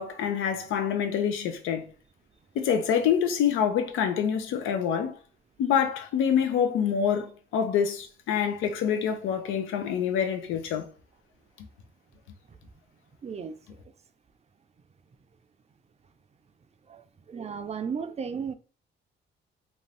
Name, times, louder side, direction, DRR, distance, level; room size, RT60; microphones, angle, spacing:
voice 1, 0.0-1.8 2.6-5.1 5.6-10.9, left 8 dB, 90° left, 0.6 m, -26 dB
voice 2, 13.2-13.6 16.9-18.5, right 6 dB, 35° right, 0.4 m, -35 dB
2.6 x 2.5 x 3.3 m
cardioid pair, 90°, 20 cm